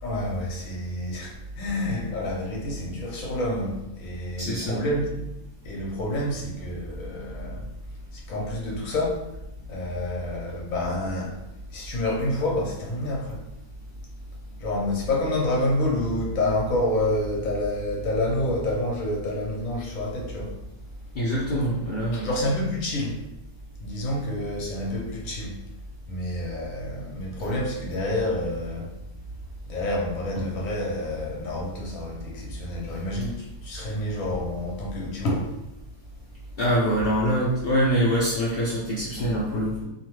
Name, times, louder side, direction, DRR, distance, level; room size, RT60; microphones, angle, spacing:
voice 1, 0.0-5.2 5.6-7.7 8.1-9.2 9.7-11.3 11.7-13.4 14.6-20.5 22.1-23.2 23.8-25.6 26.1-28.9 29.7-35.5, left 1 dB, 65° left, -1 dB, 1.0 m, -28 dB
voice 2, 4.4-4.8 21.1-22.3 36.6-39.8, equal, 80° left, -7 dB, 0.5 m, -24 dB
2.8 x 2.1 x 3.0 m, 0.88 s
omnidirectional pair, 1.6 m